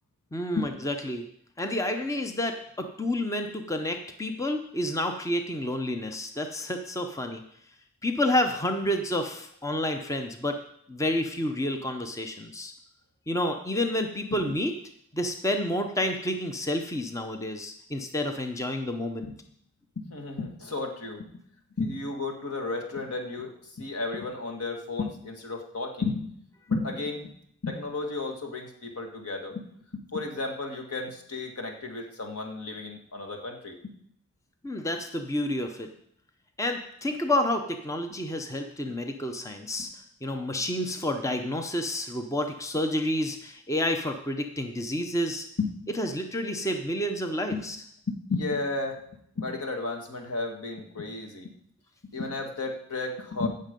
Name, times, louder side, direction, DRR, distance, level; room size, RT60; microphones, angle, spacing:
voice 1, 0.3-1.2 1.6-7.4 8.0-10.6 10.9-12.7 13.3-14.7 15.1-19.3 34.6-35.9 36.6-39.9 40.2-45.5 46.0-47.8, left 1 dB, 15° left, 6 dB, 0.7 m, -29 dB
voice 2, 20.0-21.4 21.8-26.3 26.7-27.3 27.6-29.7 29.9-34.0 45.6-45.7 47.5-47.6 48.1-49.0 49.4-51.5 52.1-53.5, left 3 dB, 85° left, 3 dB, 2.0 m, -33 dB
16.5 x 6.6 x 5.3 m, 0.69 s
head